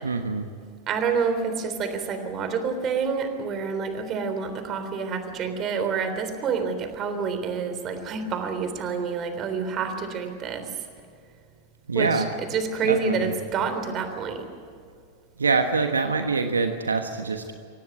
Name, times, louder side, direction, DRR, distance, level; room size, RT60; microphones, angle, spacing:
voice 1, 0.0-0.5 11.9-12.3 12.8-13.4 15.4-17.5, right 4 dB, 75° right, 7 dB, 1.3 m, -25 dB
voice 2, 0.9-10.7 11.9-12.2 12.5-14.5, right 5 dB, 30° right, 8 dB, 3.5 m, -28 dB
25.0 x 18.0 x 9.3 m, 2.4 s
figure-of-eight pair, 90°, 0 cm